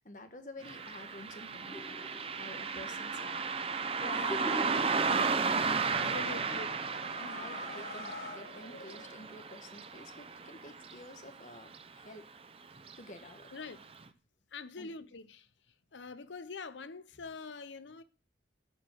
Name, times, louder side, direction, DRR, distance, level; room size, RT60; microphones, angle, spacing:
voice 1, 0.0-5.2 6.0-6.6 7.2-12.3 13.0-13.5 14.8-14.9, left 2 dB, 45° left, 1.4 m, -50 dB
Car passing by, 0.6-11.4 11.7-11.8 12.8-13.0 13.4-13.5 14.0-14.1, right 5 dB, 30° right, 0.6 m, -34 dB
sound 1, 1.7-2.5 2.9-7.1 7.4-7.6, equal, 25° left, 2.2 m, -44 dB
sound 2, 5.8-9.5, left 2 dB, 65° left, 6.5 m, -47 dB
voice 2, 5.9-6.7 13.5-13.8 14.5-15.5 15.9-18.0, left 4 dB, 85° left, 0.7 m, -44 dB
12.0 x 5.1 x 7.6 m
head